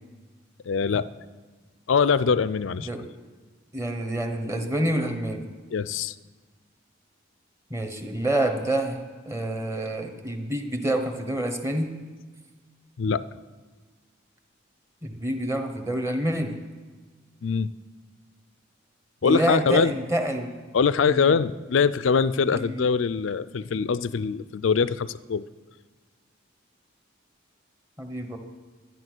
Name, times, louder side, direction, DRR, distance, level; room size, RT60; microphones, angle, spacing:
voice 1, 0.6-1.1 1.9-2.9 5.7-6.1 13.0-13.3 17.4-17.7 19.2-19.9 20.7-25.4, left 5 dB, 70° left, 17 dB, 0.4 m, -23 dB
voice 2, 3.7-5.4 7.7-9.0 9.2-11.9 15.0-16.5 19.2-20.5 21.1-21.3 22.5-22.8 28.0-28.4, right 1 dB, 15° right, 5 dB, 1.1 m, -27 dB
12.0 x 10.0 x 6.2 m, 1.4 s
head